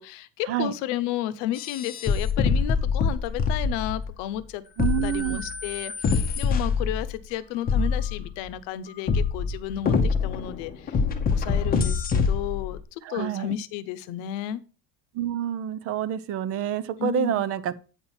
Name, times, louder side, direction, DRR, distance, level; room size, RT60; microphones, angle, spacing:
voice 1, 0.0-4.6 5.0-11.0 11.3-14.6 17.0-17.4, left 12 dB, 75° left, 0.9 m, -32 dB
sound 1, 1.6-4.2 4.8-7.1 7.7-8.5 9.1-12.8, left 5 dB, 20° left, 0.8 m, -25 dB
voice 2, 4.8-5.4 13.0-13.5 15.1-17.7, right 10 dB, 35° right, 0.4 m, -27 dB
8.7 x 4.4 x 5.6 m
cardioid pair, 175°, 44 cm